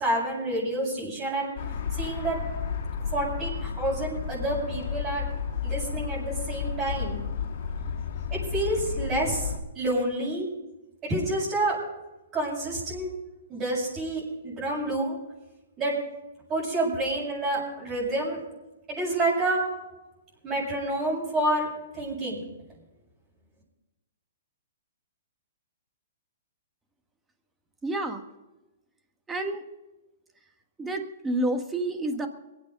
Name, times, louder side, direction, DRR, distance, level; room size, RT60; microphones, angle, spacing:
voice 1, 0.0-1.5 1.9-2.4 3.1-5.2 5.6-7.2 8.3-10.5 11.0-11.8 12.3-13.1 13.5-15.2 15.8-15.9 16.5-18.4 18.9-19.6 20.4-21.7 21.9-22.4, right 1 dB, 25° right, -7 dB, 7.2 m, -28 dB
sound 1, 1.6-9.6, left 6 dB, 55° left, 2.3 m, -32 dB
voice 2, 27.8-28.2 29.3-29.6 30.8-32.3, right 1 dB, 10° right, 6 dB, 1.5 m, -29 dB
22.0 x 9.0 x 5.3 m, 1.0 s
hypercardioid pair, 145°, 0 cm